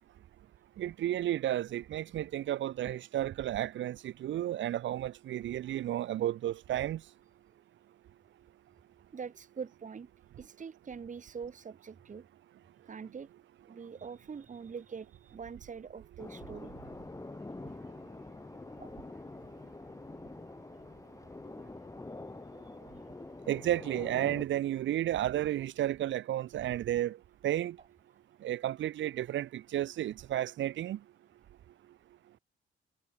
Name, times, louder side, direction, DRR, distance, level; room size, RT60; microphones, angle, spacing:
voice 1, 0.8-7.0 23.5-27.2 27.4-27.8 28.4-31.0, right 12 dB, 70° right, 1.2 m, -32 dB
voice 2, 9.1-10.1 10.4-12.2 12.8-13.3 13.7-16.7 18.8-18.9 21.5-21.6 22.5-23.1, right 6 dB, 40° right, 2.8 m, -44 dB
sound 1, 16.2-24.4, left 2 dB, 15° left, 2.5 m, -46 dB
cardioid pair, 90°, 20 cm